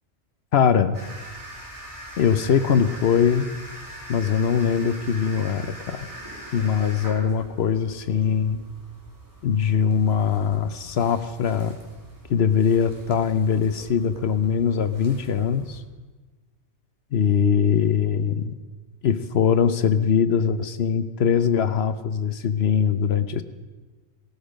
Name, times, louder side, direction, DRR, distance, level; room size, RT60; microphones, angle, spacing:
voice 1, 0.5-1.0 2.2-3.5 4.1-6.1 6.5-8.6 9.4-11.8 12.3-15.8 17.1-18.5 19.0-23.4, left 7 dB, 65° left, 12 dB, 1.0 m, -22 dB
sound 1, 0.9-15.8, right 1 dB, 15° right, 3.2 m, -43 dB
18.5 x 13.5 x 5.1 m, 1.3 s
omnidirectional pair, 1.2 m